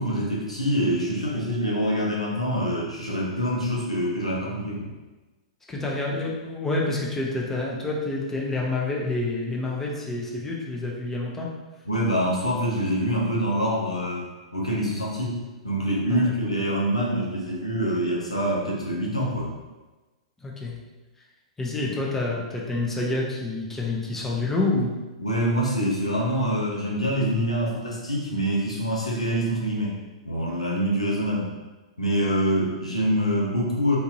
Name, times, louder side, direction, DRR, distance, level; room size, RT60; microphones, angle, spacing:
voice 1, 0.0-4.9 11.8-14.3 14.5-15.4 15.6-19.5 25.2-30.0 30.2-31.5 32.0-34.0, equal, 90° left, -4 dB, 0.8 m, -25 dB
voice 2, 5.7-11.5 16.1-16.2 20.4-20.7 21.6-25.0, left 2 dB, 10° left, -3 dB, 0.7 m, -28 dB
3.9 x 2.7 x 2.6 m, 1.2 s
figure-of-eight pair, 105°, 3 cm